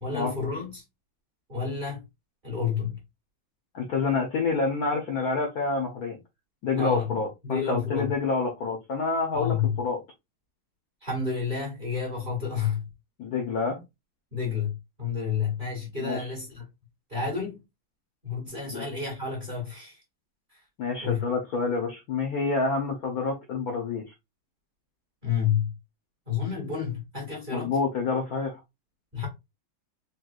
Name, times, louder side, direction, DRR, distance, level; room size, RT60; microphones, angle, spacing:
voice 1, 0.0-0.8 1.5-2.0 2.4-3.0 6.7-8.1 9.3-9.8 11.0-12.8 14.3-16.6 17.1-17.6 18.2-20.0 20.5-20.6 21.0-21.2 25.2-25.7 26.3-27.7 29.1-29.3, left 6 dB, 30° right, 1.1 m, -30 dB
voice 2, 3.7-6.2 6.6-10.0 13.2-13.8 16.0-16.3 18.7-18.8 20.8-24.0 27.5-28.6, left 4 dB, 65° left, 0.9 m, -28 dB
4.2 x 2.3 x 2.3 m
omnidirectional pair, 2.2 m